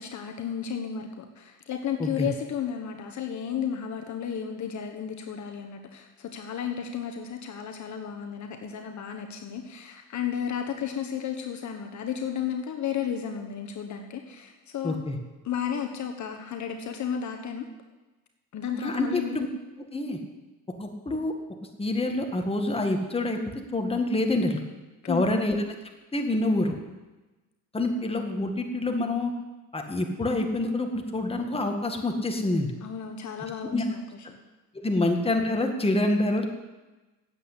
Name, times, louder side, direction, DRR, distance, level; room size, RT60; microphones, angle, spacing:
voice 1, 0.0-15.0 15.4-17.7 18.5-19.4 25.0-25.4 32.8-34.0, left 8 dB, 50° left, 4 dB, 1.3 m, -33 dB
voice 2, 14.8-15.2 18.7-19.5 19.9-20.2 20.8-21.3 21.8-23.4 23.7-24.6 25.1-25.6 26.1-26.7 27.7-29.3 29.7-32.7 33.7-33.8 34.8-36.5, left 2 dB, 15° left, 3 dB, 1.8 m, -26 dB
9.1 x 7.9 x 8.7 m, 1.2 s
supercardioid pair, 90°, 36 cm